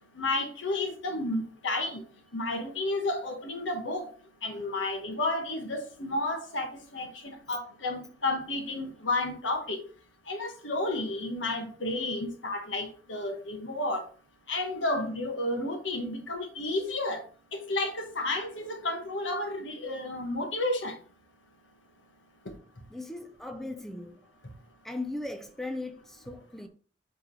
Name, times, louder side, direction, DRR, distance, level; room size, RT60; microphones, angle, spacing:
voice 1, 0.1-2.0 2.3-4.1 4.4-6.7 6.9-9.8 10.3-14.0 14.5-17.2 17.5-20.9, left 2 dB, 85° left, 1.5 m, -31 dB
voice 2, 22.9-24.3 24.8-26.7, left 2 dB, ahead, 0.5 m, -38 dB
7.7 x 3.8 x 3.3 m
head